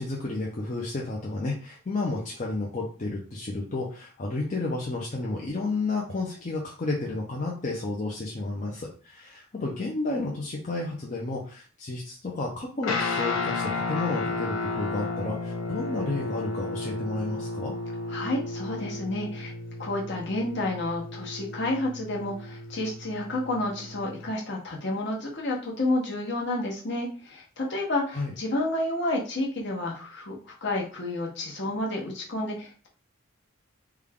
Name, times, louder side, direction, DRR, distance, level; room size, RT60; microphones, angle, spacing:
voice 1, 0.0-17.8 28.1-28.3, left 2 dB, 35° left, -3 dB, 0.6 m, -31 dB
Guitar, 12.8-24.3, left 3 dB, 75° left, 0.6 m, -33 dB
voice 2, 18.1-19.5 19.8-32.9, left 1 dB, 55° left, -2 dB, 1.1 m, -30 dB
3.4 x 2.3 x 3.5 m, 0.38 s
head